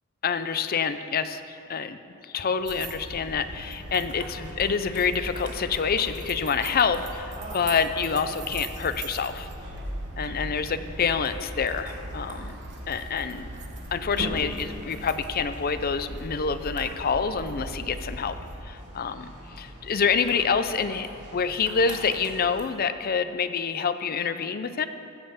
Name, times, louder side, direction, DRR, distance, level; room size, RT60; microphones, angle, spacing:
voice 1, 0.2-9.5 10.2-12.6 12.9-13.5 13.9-18.4 18.6-24.9, left 6 dB, 45° left, 11 dB, 0.5 m, -27 dB
sound 1, 2.7-18.6, right 1 dB, 60° right, 1.0 m, -39 dB
sound 2, 3.0-22.7, right 1 dB, 40° right, 2.4 m, -45 dB
15.5 x 5.6 x 7.1 m, 2.6 s
head